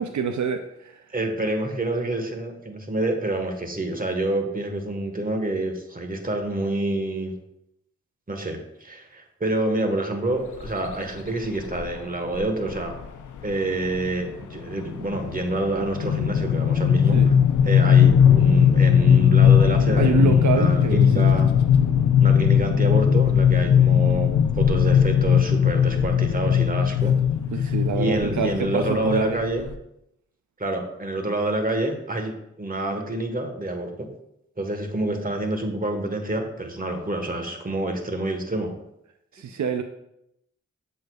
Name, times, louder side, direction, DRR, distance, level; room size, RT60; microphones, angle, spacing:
voice 1, 0.0-1.0 17.1-17.3 20.0-21.3 22.2-22.3 27.5-29.4 39.3-39.8, right 6 dB, 75° right, 7 dB, 0.5 m, -27 dB
voice 2, 1.1-7.3 8.3-12.9 13.4-17.2 17.6-21.5 22.2-27.2 27.6-29.7 30.6-32.3 32.6-34.1 34.6-38.7, right 1 dB, 30° right, 4 dB, 1.3 m, -27 dB
sound 1, 10.6-10.9 11.8-11.9 12.3-12.4 12.7-13.0 13.4-29.7, left 8 dB, 85° left, 0.5 m, -19 dB
7.5 x 6.5 x 2.3 m, 0.81 s
cardioid pair, 40°, 29 cm